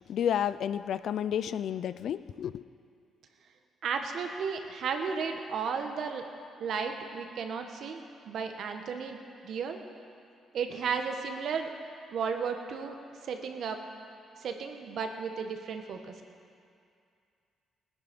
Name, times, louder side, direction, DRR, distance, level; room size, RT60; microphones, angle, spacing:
voice 1, 0.1-2.6, left 9 dB, 70° left, 15 dB, 0.4 m, -31 dB
voice 2, 3.8-6.2 6.6-9.8 10.5-11.7 12.1-12.9 13.2-13.8 14.4-16.1, right 6 dB, 65° right, 5 dB, 1.5 m, -34 dB
19.5 x 10.5 x 5.4 m, 2.4 s
cardioid pair, 90°, 0 cm